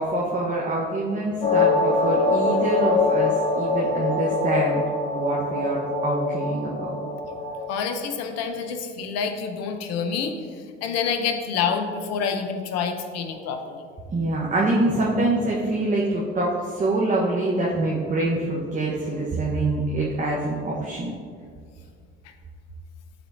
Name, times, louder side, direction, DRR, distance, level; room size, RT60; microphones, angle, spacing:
voice 1, 0.0-6.9 14.1-21.1, right 2 dB, 25° right, -5 dB, 1.3 m, -25 dB
sound 1, 1.4-7.6, left 3 dB, 25° left, 1.3 m, -24 dB
voice 2, 7.7-10.3 10.8-13.8, left 6 dB, 60° left, 6 dB, 0.9 m, -27 dB
11.5 x 4.2 x 2.8 m, 2.1 s
hypercardioid pair, 65°, 29 cm